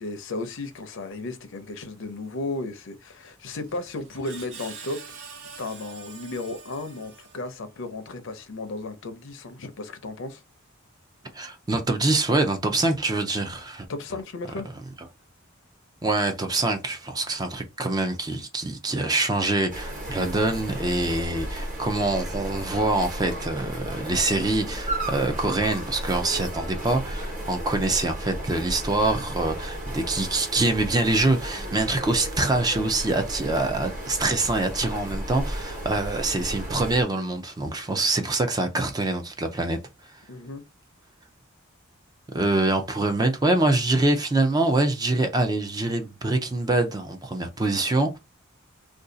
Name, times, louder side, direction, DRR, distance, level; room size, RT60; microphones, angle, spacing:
voice 1, 0.0-5.0 5.6-10.4 13.9-14.7 40.3-40.6, left 2 dB, 60° left, 0.6 m, -34 dB
Screech, 3.5-7.8, right 5 dB, 60° right, 0.7 m, -45 dB
voice 2, 11.3-13.9 16.0-39.8 40.1-40.2 42.3-48.2, right 2 dB, 20° right, 0.4 m, -25 dB
sound 1, 19.7-37.0, right 1 dB, 40° right, 1.1 m, -34 dB
2.6 x 2.3 x 3.8 m
head